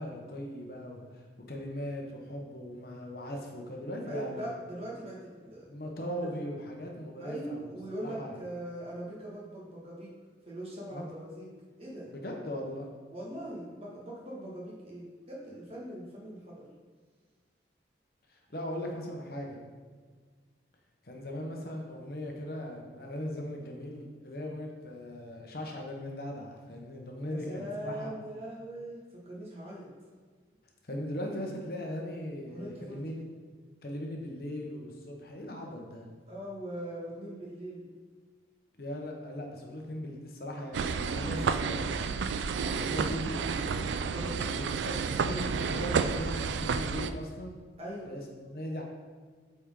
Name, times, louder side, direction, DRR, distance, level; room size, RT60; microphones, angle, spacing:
voice 1, 0.0-4.6 5.7-7.7 8.0-8.4 10.9-11.0 12.1-12.9 18.3-19.6 21.0-28.1 30.8-33.2 33.8-36.1 38.8-42.1 42.7-43.4 44.1-45.0 45.2-47.6 48.1-48.8, equal, 55° left, 1 dB, 1.0 m, -39 dB
voice 2, 4.1-5.7 6.2-6.3 7.2-10.1 10.5-11.5 11.8-12.1 13.1-16.6 27.3-29.9 32.5-33.3 36.3-37.8 44.1-44.7 45.1-45.3 47.8-48.1, right 1 dB, 35° right, -5 dB, 1.7 m, -41 dB
sound 1, 40.7-47.1, right 5 dB, 80° right, 0.3 m, -31 dB
8.2 x 4.3 x 3.7 m, 1.5 s
head